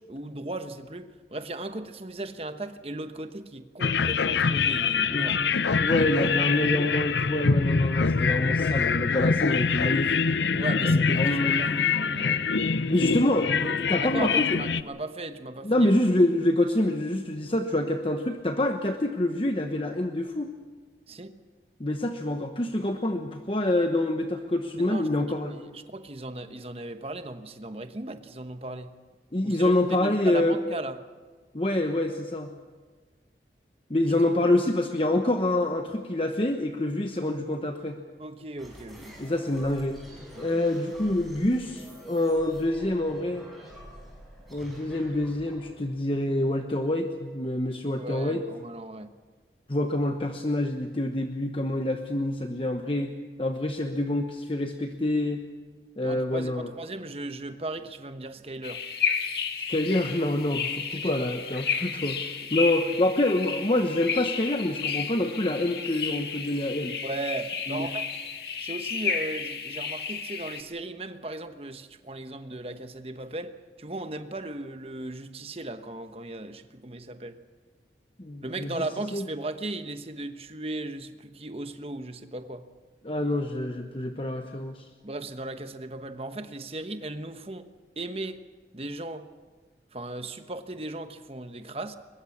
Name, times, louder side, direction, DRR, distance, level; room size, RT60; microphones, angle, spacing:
voice 1, 0.1-5.4 7.8-7.9 10.5-12.4 14.0-15.9 21.1-21.4 24.8-25.2 25.5-28.9 29.4-31.0 34.0-34.1 38.2-39.2 40.3-40.6 48.0-49.1 56.0-58.8 67.0-68.1 68.6-77.4 78.4-82.6 85.0-87.7 88.0-88.4 88.7-89.3 89.9-92.0, right 2 dB, 35° right, 9 dB, 1.1 m, -37 dB
sound 1, 3.8-14.8, left 5 dB, 85° left, 0.7 m, -24 dB
voice 2, 5.1-5.4 5.8-10.3 10.8-11.8 12.9-14.5 15.6-20.5 21.8-25.5 29.3-30.6 31.5-32.5 33.9-38.0 39.2-40.0 40.4-43.4 44.5-48.4 49.7-55.4 56.0-56.7 59.7-67.0 67.7-67.9 78.2-78.8 79.1-79.2 83.0-84.8, left 1 dB, 30° left, 5 dB, 1.0 m, -26 dB
sound 2, 38.6-46.8, equal, ahead, 6.1 m, -47 dB
sound 3, 58.6-70.6, left 6 dB, 65° left, 1.9 m, -32 dB
22.5 x 21.5 x 7.2 m, 1.4 s
head